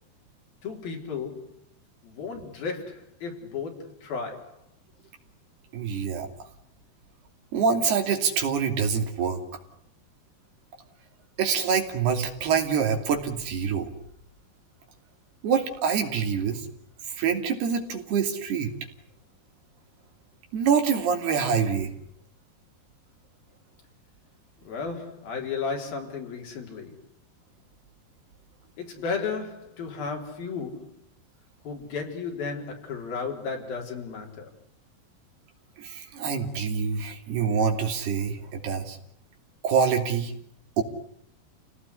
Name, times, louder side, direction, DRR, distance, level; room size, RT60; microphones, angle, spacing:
voice 1, 0.6-1.6 2.0-4.6 24.6-27.0 28.8-31.0 31.6-34.5, left 5 dB, 60° left, 5.7 m, -34 dB
voice 2, 5.7-6.3 7.5-9.4 11.4-13.9 15.4-16.7 17.2-18.7 20.5-21.9 35.8-39.0 39.6-40.3 40.8-40.9, right 6 dB, 65° right, 4.8 m, -25 dB
29.0 x 18.5 x 9.9 m
omnidirectional pair, 4.9 m